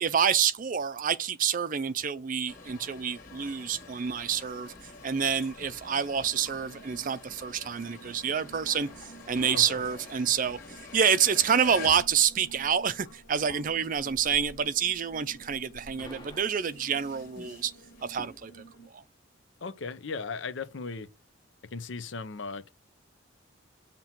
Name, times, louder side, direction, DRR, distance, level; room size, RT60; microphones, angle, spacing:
voice 1, 0.0-4.7 5.0-17.7 18.0-18.5 18.9-19.0, right 7 dB, 45° right, 0.4 m, -28 dB
sound 1, 2.5-14.7 15.0-18.4, left 3 dB, 50° left, 1.7 m, -48 dB
sound 2, 6.1-18.9, right 3 dB, 85° left, 1.4 m, -54 dB
sound 3, 8.6-16.5, left 1 dB, 25° left, 1.1 m, -51 dB
voice 2, 19.6-21.1 21.7-22.7, left 4 dB, 70° left, 0.6 m, -37 dB
7.3 x 2.9 x 5.8 m
head